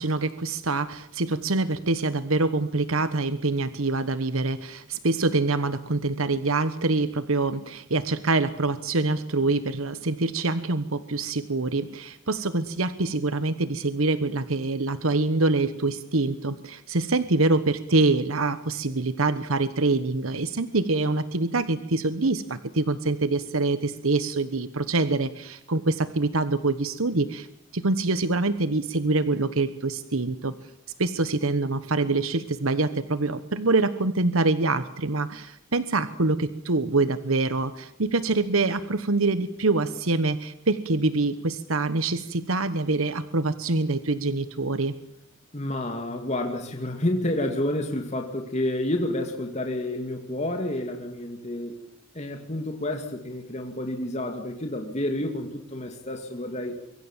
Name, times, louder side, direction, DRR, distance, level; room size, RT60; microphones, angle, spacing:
voice 1, 0.0-27.5 27.7-30.5 31.0-44.9, right 3 dB, 80° right, 12 dB, 1.2 m, -25 dB
voice 2, 45.5-51.8 52.1-56.8, left 1 dB, 30° left, 3 dB, 2.5 m, -29 dB
24.5 x 24.0 x 7.4 m, 0.74 s
head